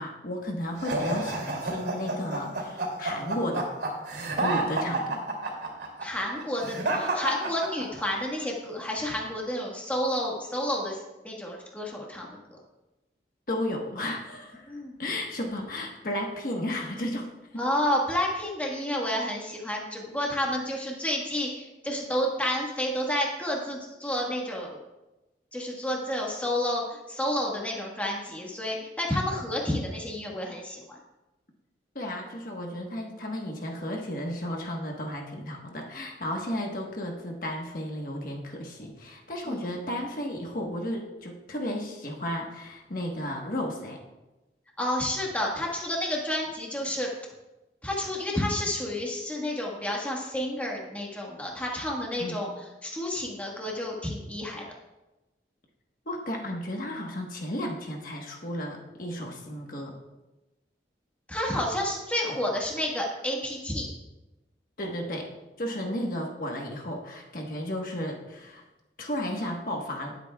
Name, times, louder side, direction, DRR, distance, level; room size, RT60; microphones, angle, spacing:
voice 1, 0.0-3.7 4.4-5.2 13.5-17.3 17.5-17.6 31.9-44.0 52.2-52.4 56.1-59.9 64.8-65.3 65.6-68.6 69.0-70.2, left 1 dB, 50° left, 0 dB, 1.3 m, -33 dB
sound 1, 0.8-8.2, right 2 dB, 70° right, 2.9 m, -30 dB
voice 2, 6.0-11.0 11.2-12.4 14.7-15.0 17.6-24.8 25.5-30.8 39.5-39.6 44.8-47.1 47.8-52.5 52.8-54.6 61.3-63.9, left 1 dB, 10° left, -2 dB, 1.5 m, -30 dB
19.0 x 8.1 x 2.4 m, 1.1 s
head